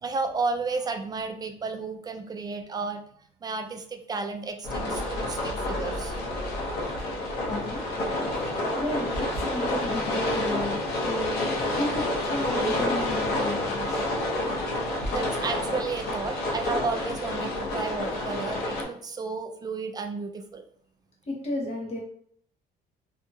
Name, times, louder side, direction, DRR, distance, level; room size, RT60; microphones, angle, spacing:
voice 1, 0.0-3.0 3.4-6.2 15.1-20.6, right 4 dB, 25° right, 6 dB, 0.4 m, -32 dB
sound 1, 4.6-18.8, left 1 dB, 75° left, 0.9 m, -29 dB
voice 2, 7.5-7.8 8.8-14.0 14.7-15.0 21.3-22.0, left 1 dB, 35° left, -2 dB, 1.0 m, -33 dB
2.7 x 2.7 x 2.3 m, 0.62 s
cardioid pair, 110°, 17 cm